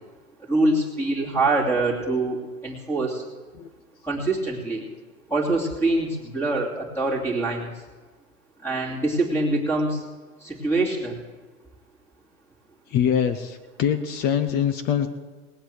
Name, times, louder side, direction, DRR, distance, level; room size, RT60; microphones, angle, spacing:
voice 1, 0.5-3.2 4.0-4.9 5.3-7.7 8.6-10.0 10.4-11.2, right 2 dB, 5° left, 0 dB, 2.7 m, -24 dB
voice 2, 12.9-15.1, left 8 dB, 20° left, 10 dB, 0.6 m, -23 dB
19.0 x 7.9 x 7.7 m, 1.3 s
hypercardioid pair, 135°, 45 cm